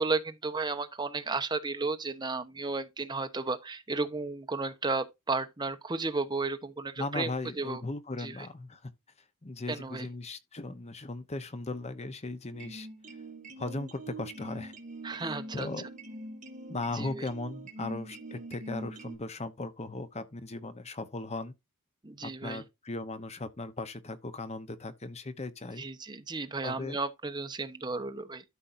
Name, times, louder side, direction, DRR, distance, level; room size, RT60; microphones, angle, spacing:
voice 1, 0.0-7.3 7.6-7.8 8.2-8.5 9.7-10.1 15.0-15.7 16.9-17.3 22.0-22.6 25.8-28.4, right 3 dB, 20° right, 1.0 m, -33 dB
voice 2, 7.0-8.9 9.4-12.9 13.6-14.7 15.5-15.9 16.7-21.5 22.2-25.8 26.6-27.0, left 2 dB, 30° left, 0.9 m, -37 dB
sound 1, 12.5-19.1, right 1 dB, 35° right, 2.2 m, -43 dB
13.0 x 5.3 x 2.6 m
head